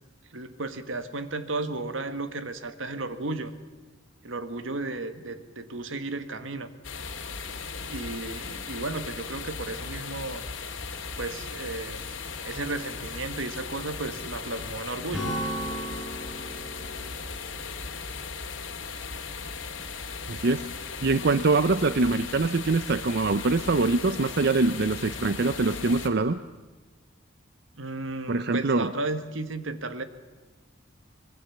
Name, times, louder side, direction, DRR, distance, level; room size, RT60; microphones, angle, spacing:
voice 1, 0.3-3.5 4.2-6.7 7.8-10.4 11.2-12.0 12.4-15.3 27.8-30.0, right 2 dB, 85° right, 10 dB, 1.7 m, -34 dB
sound 1, 6.8-26.1, left 5 dB, 85° left, 2.5 m, -37 dB
Acoustic guitar / Strum, 15.1-18.7, right 1 dB, 5° right, 7.7 m, -36 dB
voice 2, 20.3-20.6 21.0-26.4 28.3-28.9, right 3 dB, 60° right, 13 dB, 0.6 m, -24 dB
24.5 x 22.0 x 7.2 m, 1.3 s
head